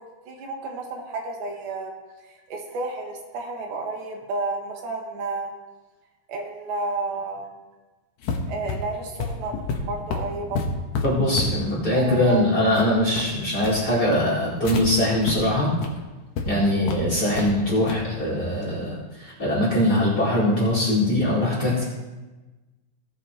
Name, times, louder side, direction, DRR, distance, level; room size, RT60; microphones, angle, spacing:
voice 1, 0.0-1.9 2.5-5.5 6.3-7.5 8.5-10.6 11.9-12.5, right 3 dB, 90° right, 1 dB, 3.3 m, -31 dB
sound 1, 8.2-14.8 15.2-15.3 15.7-15.9 16.4-16.5 16.9-17.5 17.9-18.1, left 4 dB, 65° left, 2.0 m, -30 dB
voice 2, 11.0-15.7 16.4-21.8, left 1 dB, 30° left, -6 dB, 2.2 m, -22 dB
16.5 x 8.1 x 2.9 m, 1.2 s
omnidirectional pair, 4.3 m